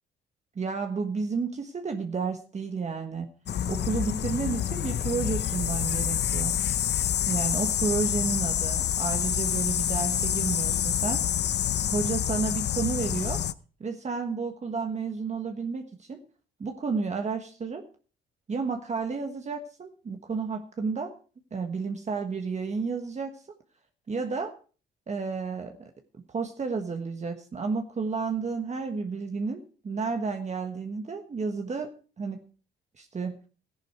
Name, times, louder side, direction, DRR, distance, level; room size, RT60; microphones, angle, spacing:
voice 1, 0.5-3.3 3.7-6.6 7.2-11.2 11.7-13.4 13.8-16.2 16.6-17.8 18.5-21.1 21.5-23.3 24.1-24.5 25.1-25.9 26.3-32.4 33.0-33.4, right 4 dB, 35° right, 5 dB, 1.4 m, -31 dB
sound 1, 3.5-13.5, left 10 dB, 60° left, 0.7 m, -27 dB
14.0 x 11.0 x 4.7 m, 0.39 s
cardioid pair, 90°, 20 cm